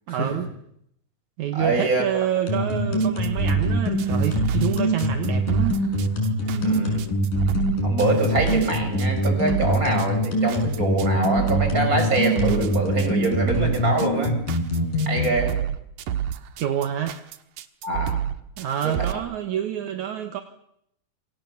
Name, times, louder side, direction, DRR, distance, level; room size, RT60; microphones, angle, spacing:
voice 1, 0.1-0.5 1.4-5.8 16.6-17.2 18.6-20.4, right 10 dB, 70° right, 8 dB, 2.6 m, -27 dB
voice 2, 1.5-2.0 6.5-7.0 7.8-14.4 15.1-15.6 17.8-18.2 18.8-19.1, right 2 dB, 25° right, 5 dB, 6.3 m, -24 dB
sound 1, 2.5-15.3, equal, 85° left, 7.6 m, -23 dB
sound 2, 3.0-19.1, right 10 dB, 85° right, 2.9 m, -29 dB
27.5 x 26.0 x 7.2 m, 0.74 s
omnidirectional pair, 3.7 m